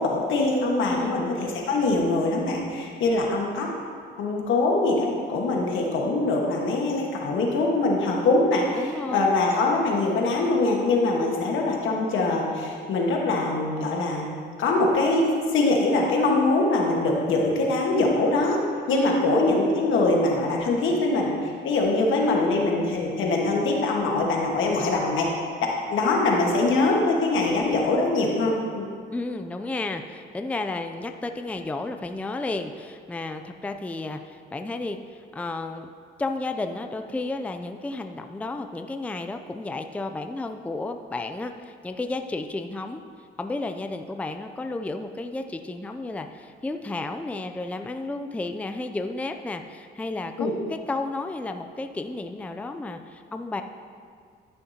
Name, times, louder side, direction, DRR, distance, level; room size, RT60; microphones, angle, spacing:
voice 1, 0.0-3.7 4.2-14.3 14.6-18.6 18.9-25.3 25.9-28.9 50.4-50.5, left 2 dB, 80° left, -1 dB, 1.5 m, -23 dB
voice 2, 0.8-1.2 8.8-9.3 18.9-19.2 29.1-35.9 36.2-43.0 43.4-53.6, left 2 dB, 5° left, 6 dB, 0.4 m, -32 dB
13.5 x 6.5 x 2.9 m, 2.2 s
cardioid pair, 90°, 20 cm